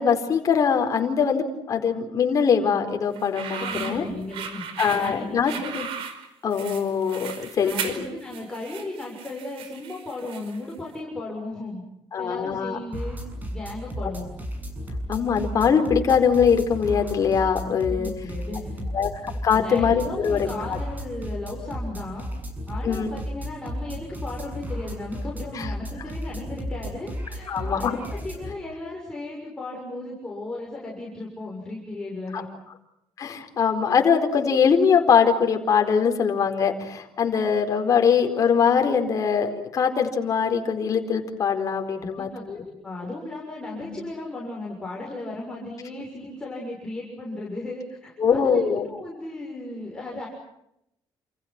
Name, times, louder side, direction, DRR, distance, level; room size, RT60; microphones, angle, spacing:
voice 1, 0.0-4.1 4.8-5.9 6.4-8.1 12.1-12.8 14.0-14.1 15.1-18.1 18.9-19.1 19.4-20.5 22.8-23.1 25.5-25.7 27.5-28.0 32.3-32.4 33.2-42.6 43.8-44.0 48.2-48.9, left 6 dB, 35° left, 5 dB, 4.5 m, -22 dB
sound 1, 3.1-10.7, right 7 dB, 70° right, 4.9 m, -36 dB
voice 2, 3.5-5.7 7.6-11.8 12.2-13.2 13.5-14.3 17.7-18.9 19.5-22.3 22.7-32.5 41.9-50.3, left 2 dB, 10° left, -3 dB, 6.9 m, -36 dB
sound 2, 12.9-28.5, equal, 15° right, 7.2 m, -34 dB
30.0 x 28.5 x 6.1 m, 0.82 s
cardioid pair, 175°, 10 cm